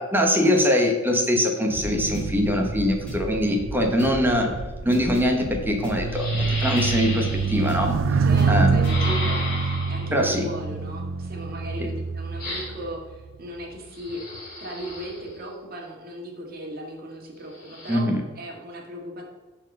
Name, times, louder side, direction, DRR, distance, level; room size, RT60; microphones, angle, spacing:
voice 1, 0.0-4.5 4.8-7.9 8.5-8.8 10.1-10.5 11.8-11.9 17.9-18.2, equal, 10° right, 2 dB, 1.0 m, -22 dB
sound 1, 1.7-9.0, equal, 5° left, 2.7 m, -35 dB
sound 2, 1.7-13.3 14.1-14.4, right 5 dB, 65° right, 0.4 m, -27 dB
sound 3, 6.1-7.8 8.8-10.2 12.4-12.9 13.9-15.3 17.5-18.0, left 2 dB, 45° left, 2.9 m, -34 dB
voice 2, 8.2-14.2 14.6-18.0 18.4-19.3, right 1 dB, 45° right, 0 dB, 1.8 m, -36 dB
10.5 x 4.4 x 5.3 m, 1.3 s
head